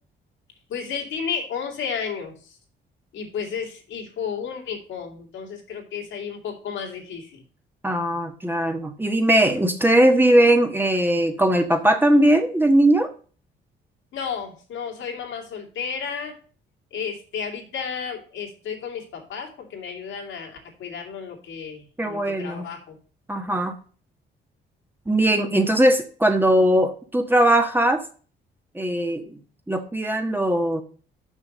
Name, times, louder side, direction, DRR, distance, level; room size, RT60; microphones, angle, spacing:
voice 1, 0.7-2.6 3.1-7.4 14.1-16.4 16.9-23.0, left 6 dB, 80° left, 0 dB, 2.7 m, -32 dB
voice 2, 7.8-13.1 22.0-22.7 23.3-23.8 25.1-28.0 28.7-29.4 29.7-30.8, right 1 dB, 10° right, 5 dB, 1.3 m, -19 dB
6.4 x 5.9 x 6.7 m, 0.40 s
cardioid pair, 90°, 20 cm